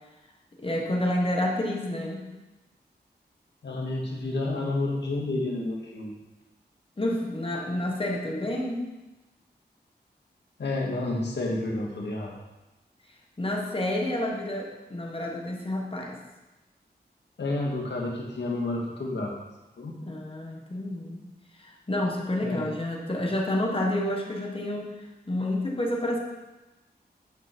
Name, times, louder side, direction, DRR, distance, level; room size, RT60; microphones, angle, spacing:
voice 1, 0.6-2.3 7.0-8.9 13.4-16.2 20.0-21.3 21.6-24.9 25.3-26.2, left 1 dB, 30° left, 0 dB, 1.7 m, -29 dB
voice 2, 3.6-6.1 10.6-12.3 17.4-19.4 19.8-20.0 22.4-22.7, left 2 dB, 90° left, -2 dB, 1.9 m, -30 dB
9.9 x 6.2 x 4.6 m, 1.0 s
wide cardioid pair, 85°, 18 cm